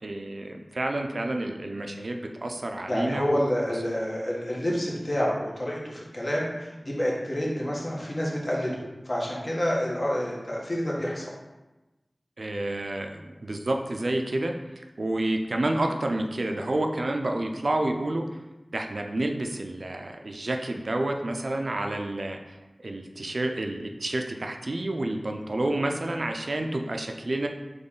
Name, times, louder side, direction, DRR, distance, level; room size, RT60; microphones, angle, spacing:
voice 1, 0.0-3.4 12.4-18.2 18.7-27.5, right 1 dB, 75° right, 4 dB, 0.4 m, -29 dB
voice 2, 2.9-11.3, equal, 45° left, -4 dB, 1.2 m, -28 dB
4.0 x 3.1 x 3.7 m, 1.1 s
wide cardioid pair, 40°, 0 cm